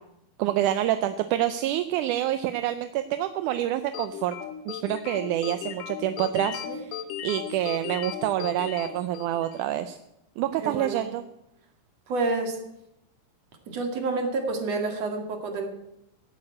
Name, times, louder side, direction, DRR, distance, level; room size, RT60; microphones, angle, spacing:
voice 1, 0.4-4.4 4.7-7.0 7.2-10.0 10.4-11.2, right 12 dB, 75° right, 10 dB, 2.0 m, -27 dB
sound 1, 3.9-9.7, left 9 dB, 75° left, 2.5 m, -36 dB
voice 2, 10.6-11.0 12.1-12.6 13.7-15.7, right 3 dB, 50° right, 4 dB, 3.1 m, -29 dB
17.5 x 8.6 x 8.7 m, 0.83 s
omnidirectional pair, 4.0 m